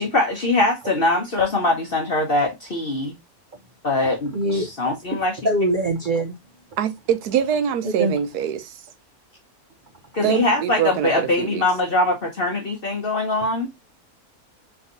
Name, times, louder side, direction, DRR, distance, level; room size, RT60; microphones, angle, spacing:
voice 1, 0.0-3.1 3.8-5.3 10.1-13.7, left 2 dB, 40° left, 1.0 m, -22 dB
voice 2, 4.3-4.7 5.1-5.2 5.4-6.4 7.8-8.2 10.2-10.4, right 1 dB, 40° right, 0.8 m, -23 dB
voice 3, 6.8-8.8 10.2-11.6, right 9 dB, 85° right, 1.3 m, -24 dB
3.9 x 3.5 x 3.8 m
omnidirectional pair, 1.6 m